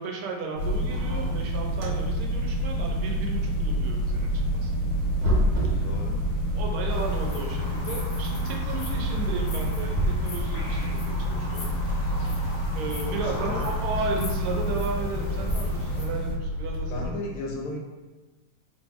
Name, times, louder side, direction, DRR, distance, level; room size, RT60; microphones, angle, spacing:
voice 1, 0.0-4.7 5.6-5.9 6.5-11.7 12.7-17.2, right 3 dB, 85° right, 0 dB, 1.7 m, -34 dB
sound 1, 0.5-17.1, right 1 dB, 65° right, 1.5 m, -28 dB
sound 2, 0.6-16.3, left 4 dB, ahead, 0.3 m, -34 dB
voice 2, 5.8-6.2 8.7-9.2 13.1-13.7 16.9-17.8, left 2 dB, 90° left, 0 dB, 1.6 m, -35 dB
sound 3, 6.9-16.1, left 1 dB, 65° left, 0.9 m, -40 dB
3.7 x 3.1 x 3.5 m, 1.2 s
omnidirectional pair, 2.3 m